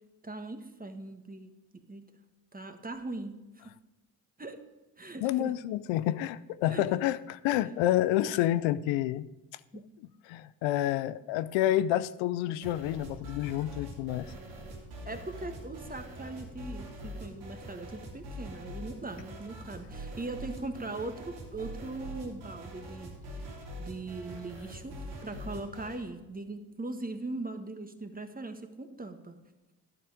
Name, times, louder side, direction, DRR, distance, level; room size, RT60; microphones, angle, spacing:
voice 1, 0.2-1.5 1.9-2.1 2.5-3.7 4.4-4.6 5.0-5.5 6.7-6.8 9.7-9.9 15.0-23.1 23.8-29.4, right 2 dB, 20° right, 7 dB, 1.5 m, -40 dB
voice 2, 5.2-9.3 10.3-14.3, left 13 dB, 85° left, 16 dB, 0.5 m, -29 dB
sound 1, 12.6-26.0, right 1 dB, 90° right, 2.9 m, -44 dB
11.0 x 8.7 x 5.0 m, 1.1 s
supercardioid pair, 55°, 45 cm